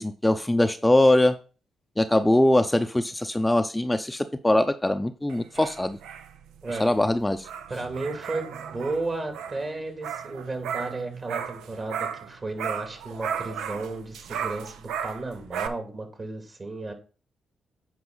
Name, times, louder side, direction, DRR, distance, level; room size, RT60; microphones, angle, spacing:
voice 1, 0.0-1.3 2.0-6.0 6.8-7.5, left 1 dB, 15° left, 8 dB, 0.6 m, -22 dB
sound 1, 5.3-12.3 12.6-15.7, right 8 dB, 80° right, 0.5 m, -35 dB
voice 2, 7.7-16.9, right 2 dB, 40° right, 4 dB, 2.6 m, -33 dB
9.4 x 4.8 x 4.0 m, 0.37 s
hypercardioid pair, 45°, 0 cm